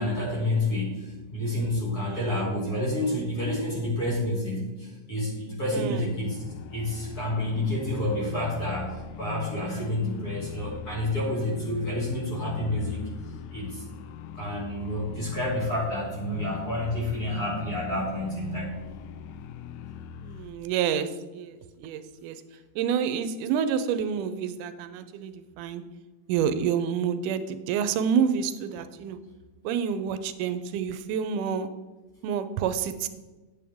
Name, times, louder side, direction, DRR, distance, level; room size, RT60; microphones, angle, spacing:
voice 1, 0.0-6.4 6.7-13.0 13.5-13.8 14.3-18.8, left 1 dB, 30° left, -5 dB, 2.6 m, -29 dB
voice 2, 2.1-2.4 5.7-6.1 20.2-22.4 22.8-25.8 26.3-29.2 29.6-31.7 32.2-33.1, right 7 dB, 90° right, 11 dB, 2.2 m, -28 dB
sound 1, 5.8-20.6, left 7 dB, 85° left, 2.1 m, -40 dB
9.0 x 8.5 x 3.5 m, 1.2 s
omnidirectional pair, 3.6 m